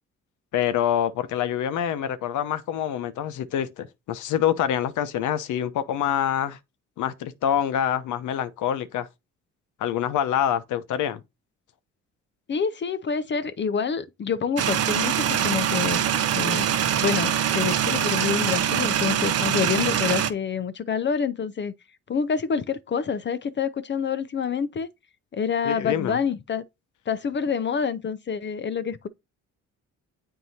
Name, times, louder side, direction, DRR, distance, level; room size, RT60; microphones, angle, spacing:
voice 1, 0.5-6.6 7.0-9.1 9.8-11.2 25.6-26.2, left 10 dB, 80° left, 0.8 m, -26 dB
voice 2, 12.5-16.1 16.3-16.7 17.0-21.7 22.1-24.9 25.3-26.6 27.1-29.1, left 6 dB, 40° left, 0.5 m, -27 dB
sound 1, 14.6-20.3, right 9 dB, 55° right, 0.7 m, -23 dB
7.8 x 4.5 x 2.8 m
cardioid pair, 90°, 30 cm